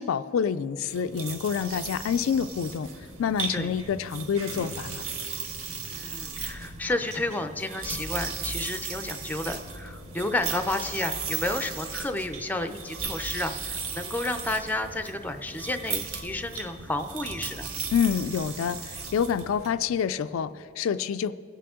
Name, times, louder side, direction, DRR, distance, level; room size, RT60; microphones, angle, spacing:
voice 1, 0.0-2.9 3.2-5.0 17.9-21.3, left 7 dB, 70° left, 12 dB, 0.3 m, -27 dB
sound 1, 0.9-19.7, right 5 dB, 80° right, 1.2 m, -36 dB
voice 2, 5.9-17.7, left 2 dB, 10° left, 8 dB, 0.4 m, -31 dB
23.0 x 8.5 x 3.7 m, 2.8 s
head